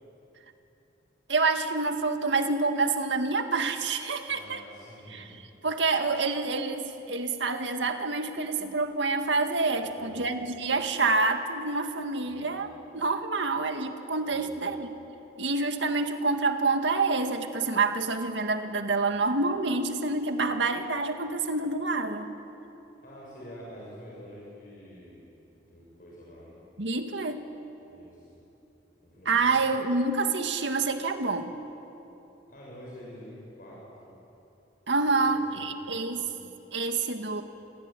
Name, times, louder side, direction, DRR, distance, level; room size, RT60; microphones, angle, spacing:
voice 1, 1.3-4.6 5.1-5.2 5.6-14.9 15.4-22.3 26.8-27.4 29.3-31.5 34.9-36.3 36.7-37.4, right 3 dB, 85° right, 6 dB, 2.0 m, -27 dB
voice 2, 4.3-5.3 9.8-10.4 12.2-12.5 14.3-14.7 23.0-25.3 25.6-26.6 27.9-28.3 29.0-29.7 32.5-34.1 35.1-35.6 35.9-36.5, equal, 50° left, -5 dB, 7.4 m, -47 dB
28.0 x 23.0 x 9.2 m, 3.0 s
head